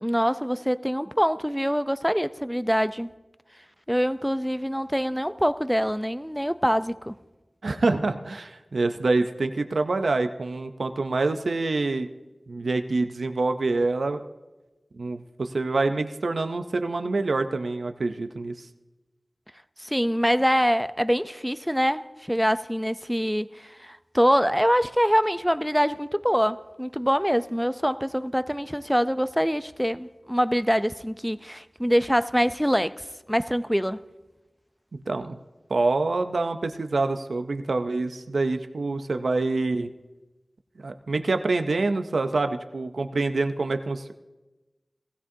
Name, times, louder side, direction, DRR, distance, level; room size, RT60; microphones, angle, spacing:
voice 1, 0.0-3.1 3.9-7.1 19.8-34.0, equal, ahead, 0.5 m, -24 dB
voice 2, 7.6-12.1 12.5-14.2 14.9-18.7 35.1-35.4 35.7-39.9 40.8-44.1, right 3 dB, 85° right, 0.5 m, -26 dB
16.5 x 16.0 x 2.7 m
wide cardioid pair, 45°, 0 cm